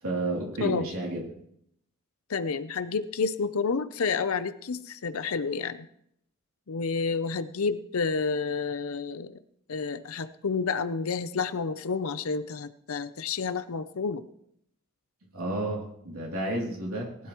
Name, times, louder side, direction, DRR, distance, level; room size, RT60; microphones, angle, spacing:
voice 1, 0.0-1.2 15.3-17.3, right 1 dB, 75° right, -2 dB, 2.9 m, -31 dB
voice 2, 2.3-5.9 6.7-9.4 9.7-14.3, left 5 dB, 75° left, 12 dB, 0.6 m, -30 dB
19.5 x 12.5 x 3.1 m, 0.72 s
head